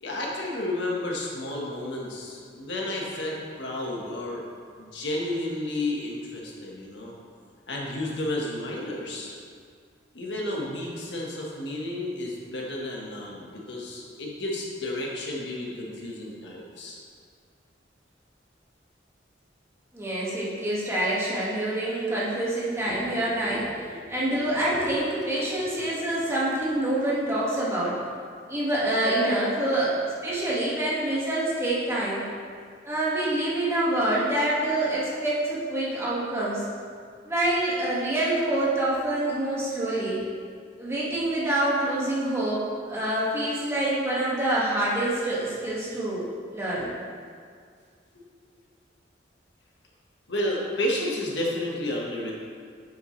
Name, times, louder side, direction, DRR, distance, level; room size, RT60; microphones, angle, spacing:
voice 1, 0.0-4.4 4.8-7.1 7.7-9.3 10.1-17.0 22.1-22.2 22.8-23.6 23.9-24.1 48.1-48.3 50.3-52.3, left 1 dB, 75° left, -2 dB, 1.4 m, -32 dB
voice 2, 19.9-23.6 24.1-28.0 28.5-30.0 30.2-32.2 32.9-36.6 37.2-40.2 40.8-46.2 46.5-46.9, right 1 dB, 15° right, -8 dB, 1.8 m, -26 dB
9.6 x 7.0 x 3.2 m, 2.1 s
head